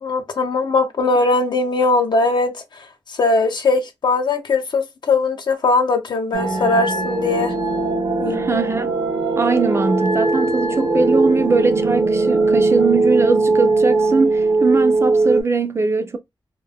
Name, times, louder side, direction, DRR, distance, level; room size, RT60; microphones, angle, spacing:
voice 1, 0.0-2.5 3.2-7.5 8.2-8.6, left 3 dB, 60° left, 0.6 m, -19 dB
sound 1, 6.3-15.4, right 3 dB, 70° right, 0.7 m, -19 dB
voice 2, 8.3-9.0 9.4-16.2, right 4 dB, 30° right, 0.3 m, -21 dB
2.2 x 2.0 x 3.3 m
wide cardioid pair, 150°, 9 cm